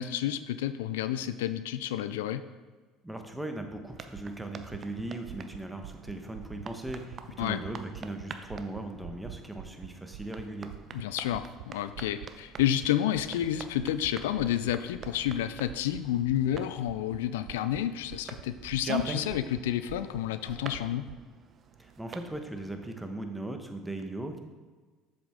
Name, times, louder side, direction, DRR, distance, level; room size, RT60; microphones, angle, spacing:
voice 1, 0.0-2.4 7.4-7.6 10.9-21.1, left 11 dB, 90° left, 12 dB, 0.3 m, -30 dB
voice 2, 3.0-10.7 21.8-24.4, right 1 dB, 5° right, 5 dB, 1.1 m, -38 dB
sound 1, 3.9-23.1, right 6 dB, 45° right, 0.7 m, -45 dB
sound 2, 4.1-8.2 8.5-11.6 11.9-12.3 12.6-12.9 13.2-13.5 13.8-14.1 14.4-14.7 15.0-15.4 15.7-16.0 16.3-16.6 16.9-17.2 17.5-17.8 18.1-19.0 19.3-19.6 19.9-20.2 20.5-21.2, right 15 dB, 80° right, 0.3 m, -44 dB
sound 3, 16.2-16.5 16.8-16.9 17.1-17.2 17.4-17.5 17.7-18.0 18.5-18.6 19.0-21.0, left 1 dB, 65° left, 2.3 m, -56 dB
7.4 x 7.1 x 3.7 m, 1.4 s
supercardioid pair, 80°, 0 cm